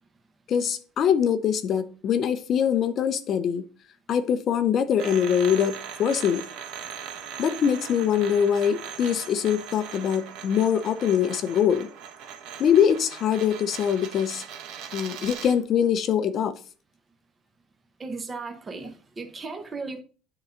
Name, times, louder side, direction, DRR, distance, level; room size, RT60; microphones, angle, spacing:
voice 1, 0.5-3.6 4.1-6.4 7.4-11.9 12.6-14.4 14.9-16.6, left 8 dB, 35° left, 11 dB, 0.5 m, -23 dB
sound 1, 5.0-15.6, right 8 dB, 60° right, 1.0 m, -40 dB
voice 2, 18.0-20.0, right 3 dB, 15° right, 5 dB, 0.8 m, -36 dB
9.8 x 3.8 x 4.3 m, 0.38 s
cardioid pair, 170°, 0 cm